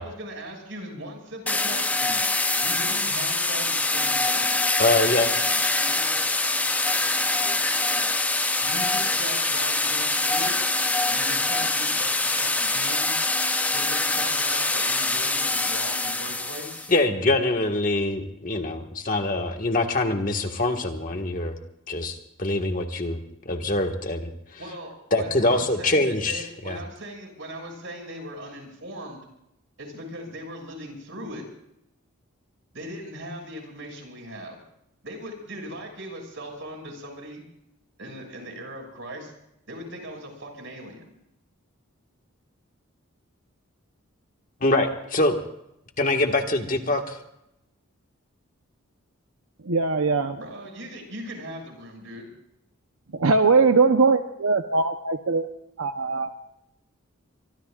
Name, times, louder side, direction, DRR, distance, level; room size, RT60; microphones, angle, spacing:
voice 1, 0.0-2.2 2.6-4.5 8.6-10.6 11.1-13.1 13.7-16.9 24.6-29.2 29.8-31.5 32.7-34.6 35.0-37.4 38.0-39.3 39.7-41.1 50.4-52.3, right 1 dB, 60° right, 2 dB, 6.2 m, -39 dB
sound 1, 1.5-16.9, left 2 dB, 5° left, 0.5 m, -24 dB
voice 2, 4.8-5.3 16.9-21.6 21.9-23.2 23.5-24.3 25.1-26.8 44.6-45.4 46.0-47.2, left 2 dB, 40° left, 4 dB, 1.7 m, -24 dB
voice 3, 49.7-50.4 53.1-55.5 55.8-56.3, right 4 dB, 80° right, 6 dB, 0.9 m, -21 dB
24.5 x 23.5 x 2.5 m, 0.81 s
head